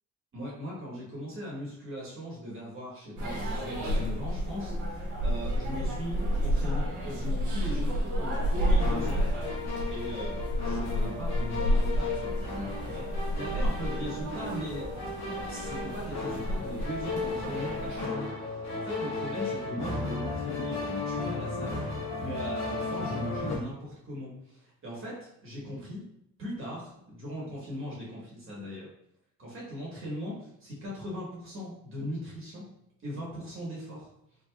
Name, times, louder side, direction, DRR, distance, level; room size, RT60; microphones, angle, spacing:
voice 1, 0.3-9.2 9.9-14.9 15.5-26.0 26.4-28.9 29.4-32.7 33.0-34.1, equal, 45° right, -5 dB, 1.3 m, -39 dB
sound 1, 3.2-18.1, equal, 85° right, 1.2 m, -30 dB
sound 2, 8.8-23.6, left 3 dB, 60° left, 1.1 m, -35 dB
3.9 x 2.8 x 2.2 m, 0.77 s
cardioid pair, 90°, 30 cm